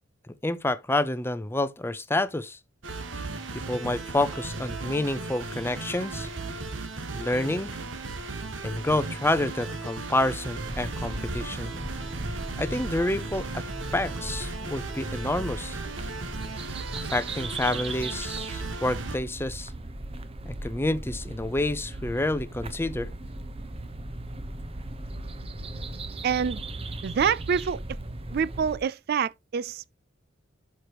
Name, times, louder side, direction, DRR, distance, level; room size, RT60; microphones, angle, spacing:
voice 1, 0.3-2.6 3.7-6.3 7.1-7.7 8.6-11.7 12.6-13.6 13.9-15.8 17.1-19.7 20.4-23.1, left 2 dB, 10° left, 0.6 m, -28 dB
sound 1, 2.8-19.2, right 3 dB, 85° right, 1.4 m, -36 dB
sound 2, 10.6-28.8, right 2 dB, 30° right, 0.9 m, -37 dB
voice 2, 26.2-26.6 27.0-28.0 28.3-30.0, right 7 dB, 55° right, 0.3 m, -27 dB
11.5 x 4.7 x 2.9 m
head